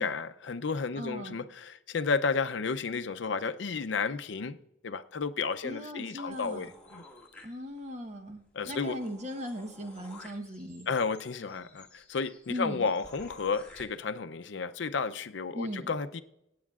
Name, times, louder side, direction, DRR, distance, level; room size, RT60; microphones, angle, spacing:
voice 1, 0.0-4.6 4.8-7.0 8.5-9.0 10.9-16.2, left 5 dB, 70° left, 0.5 m, -32 dB
voice 2, 0.9-1.4 5.6-6.7 7.4-10.9 12.5-12.9 15.5-15.9, equal, 35° right, 1.0 m, -38 dB
sound 1, 6.3-8.0 8.4-8.5 8.7-13.8, left 1 dB, 5° left, 1.5 m, -53 dB
23.0 x 9.4 x 2.4 m
head